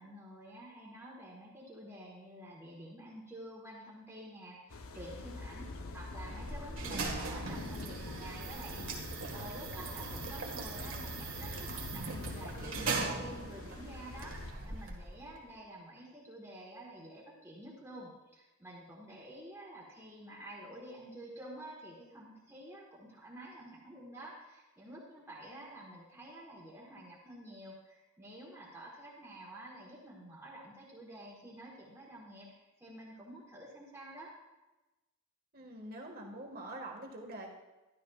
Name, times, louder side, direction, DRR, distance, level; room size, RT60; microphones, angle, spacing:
voice 1, 0.0-34.3, right 1 dB, 10° right, -6 dB, 1.4 m, -49 dB
sound 1, 4.7-14.5, left 2 dB, 70° left, 0.7 m, -45 dB
sound 2, 6.1-15.4, right 4 dB, 65° right, 1.6 m, -40 dB
voice 2, 35.5-37.5, right 1 dB, 40° right, 0 dB, 1.7 m, -45 dB
13.0 x 11.5 x 2.4 m, 1.1 s
head